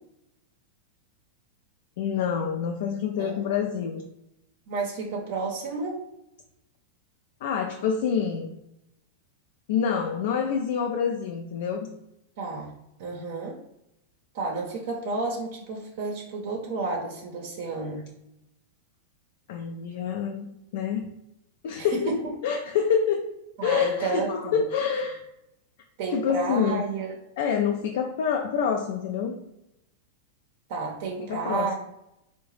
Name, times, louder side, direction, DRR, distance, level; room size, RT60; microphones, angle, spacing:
voice 1, 2.0-4.0 7.4-8.5 9.7-11.9 19.5-21.0 21.6-22.1 22.4-23.2 23.6-25.3 26.1-26.9 27.4-29.4 31.2-31.7, left 7 dB, 70° left, 3 dB, 0.3 m, -27 dB
voice 2, 4.7-6.0 12.4-12.7 13.0-13.6 14.3-18.0 21.8-22.3 23.6-24.6 26.0-27.1 30.7-31.7, right 3 dB, 65° right, 1 dB, 0.6 m, -31 dB
3.7 x 2.1 x 3.0 m, 0.86 s
hypercardioid pair, 125°, 0 cm